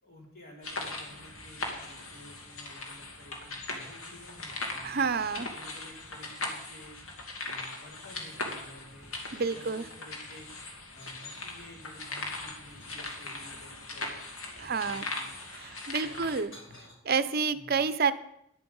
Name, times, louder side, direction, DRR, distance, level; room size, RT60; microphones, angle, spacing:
voice 1, 0.0-5.1 5.5-7.0 7.4-9.2 9.5-10.4 10.9-14.2 14.6-15.3 16.0-16.4 17.5-17.7, left 1 dB, 45° left, -2 dB, 3.8 m, -52 dB
sound 1, 0.6-16.4, left 2 dB, 85° left, 2.4 m, -40 dB
voice 2, 4.8-5.5 9.3-9.9 14.6-15.1 15.5-16.5 17.0-18.1, right 5 dB, 50° right, 14 dB, 0.6 m, -29 dB
sound 2, 7.8-8.7 9.0-10.3 10.8-11.5 12.1-13.6 14.4-15.3 16.1-16.9, left 1 dB, 65° left, 5.8 m, -56 dB
11.0 x 10.5 x 5.5 m, 0.75 s
head